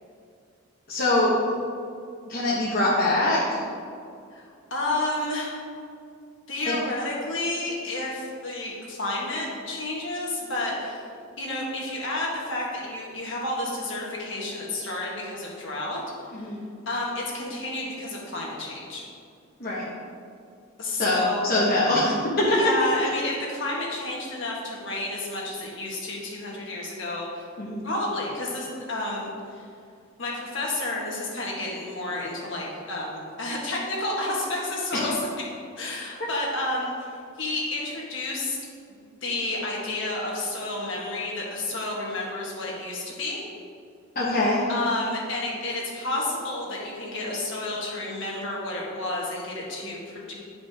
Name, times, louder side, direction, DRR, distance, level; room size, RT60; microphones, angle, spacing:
voice 1, 0.9-1.4 2.3-3.6 6.6-6.7 16.3-16.6 19.6-19.8 21.0-22.9 27.6-27.9 34.9-35.0 44.1-44.6, left 1 dB, 45° left, -8 dB, 1.2 m, -23 dB
voice 2, 4.7-5.6 6.5-11.0 11.4-16.0 16.3-16.5 16.8-19.1 20.8-21.6 22.5-27.5 27.8-29.6 30.2-35.2 35.8-37.1 37.4-38.6 38.9-43.4 44.7-50.3, left 2 dB, 60° left, -4 dB, 1.6 m, -31 dB
10.0 x 5.0 x 3.6 m, 2.4 s
head